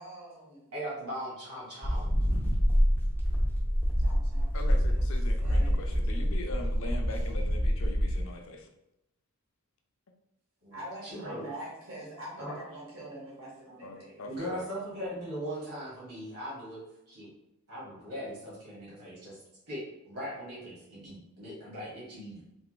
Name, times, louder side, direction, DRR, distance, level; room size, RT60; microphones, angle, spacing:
voice 1, 0.0-0.7 4.0-5.0 5.4-5.9 10.7-14.4, right 1 dB, 65° right, -4 dB, 0.9 m, -45 dB
voice 2, 0.7-2.1 10.6-11.5 12.4-12.6 14.3-17.3 17.7-19.4 19.7-22.4, equal, 85° right, -6 dB, 1.4 m, -39 dB
sound 1, 1.8-8.2, equal, 10° left, 0.5 m, -26 dB
voice 3, 4.5-8.7 13.8-14.6, left 2 dB, 60° left, 3 dB, 0.5 m, -41 dB
3.4 x 3.0 x 2.2 m, 0.88 s
head